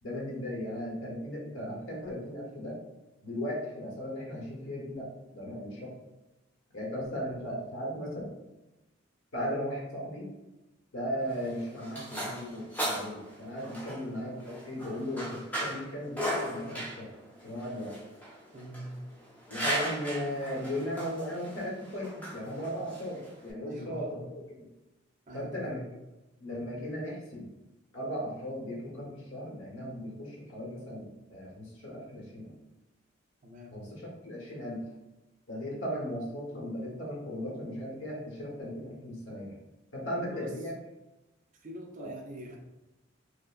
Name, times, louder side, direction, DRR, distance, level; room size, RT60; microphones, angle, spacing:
voice 1, 0.0-2.8 3.2-5.9 6.7-8.3 9.3-10.3 10.9-17.1 17.4-17.9 19.5-24.7 25.3-25.8 26.4-27.5 27.9-32.5 33.7-34.8 35.5-39.6 39.9-40.7 42.0-42.1, equal, 75° left, -3 dB, 1.1 m, -37 dB
sound 1, 11.2-23.5, equal, 10° left, 0.6 m, -37 dB
voice 2, 18.5-18.9 23.6-24.1 25.3-25.8 33.4-33.8 40.2-40.5 41.6-42.6, equal, 40° right, 1 dB, 0.5 m, -44 dB
4.9 x 2.1 x 2.4 m, 1.0 s
head